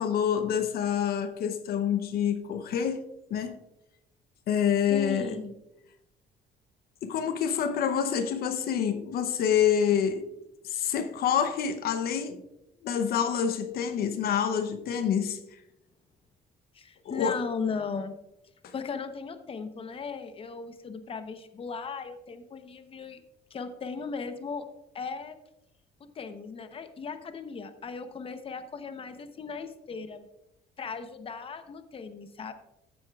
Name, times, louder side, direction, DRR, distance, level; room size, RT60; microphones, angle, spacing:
voice 1, 0.0-3.0 3.3-3.6 4.5-5.4 7.0-10.2 10.6-12.4 12.8-15.6 17.0-17.4 18.6-18.7, left 8 dB, 65° left, 0.8 m, -27 dB
voice 2, 4.9-5.5 16.7-18.2 18.7-23.2 23.5-24.7 24.9-25.4 26.0-30.3 30.8-32.5, left 5 dB, 35° left, 0.9 m, -37 dB
14.0 x 7.7 x 2.4 m
cardioid pair, 110°, 17 cm